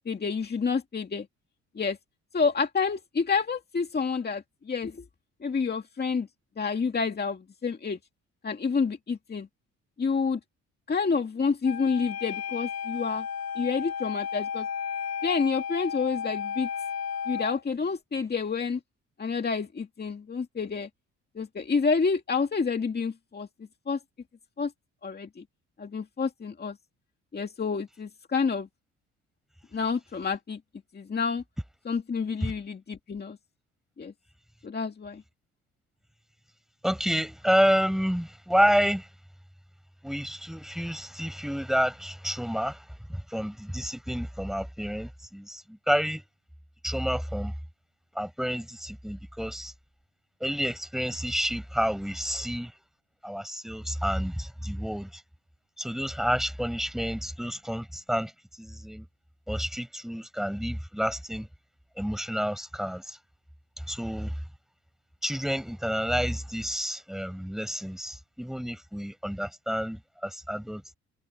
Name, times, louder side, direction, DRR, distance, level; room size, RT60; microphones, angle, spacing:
voice 1, 0.1-1.3 1.8-2.0 2.3-5.0 5.4-6.3 6.6-8.0 8.4-9.5 10.0-10.4 10.9-13.3 13.6-14.7 15.2-16.7 17.3-18.8 19.2-20.9 21.4-23.5 23.9-24.0 24.6-24.7 25.0-25.3 25.8-26.8 27.3-28.7 29.7-30.6 30.9-31.4 31.9-33.4 34.0-34.1 34.6-35.2, left 5 dB, 35° left, 2.1 m, -28 dB
Wind instrument woodwind instrument, 11.6-17.6, left 7 dB, 60° left, 3.0 m, -33 dB
voice 2, 36.8-39.1 40.0-42.8 43.1-46.2 46.8-47.5 48.2-49.7 50.4-52.7 53.2-55.2 55.8-58.3 58.6-59.1 59.5-61.5 62.0-63.2 63.9-64.3 65.2-71.0, equal, ahead, 5.3 m, -29 dB
cardioid pair, 90°, 30 cm